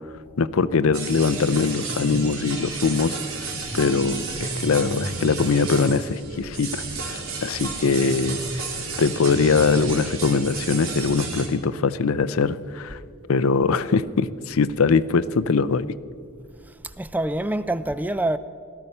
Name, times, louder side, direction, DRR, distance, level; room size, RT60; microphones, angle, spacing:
voice 1, 0.4-3.5 3.7-8.6 9.0-13.0 13.3-15.9, left 4 dB, 85° left, 0.5 m, -22 dB
sound 1, 0.9-11.5, right 3 dB, 90° right, 2.7 m, -31 dB
voice 2, 16.7-18.4, right 1 dB, 10° right, 0.3 m, -26 dB
18.0 x 13.5 x 5.5 m
head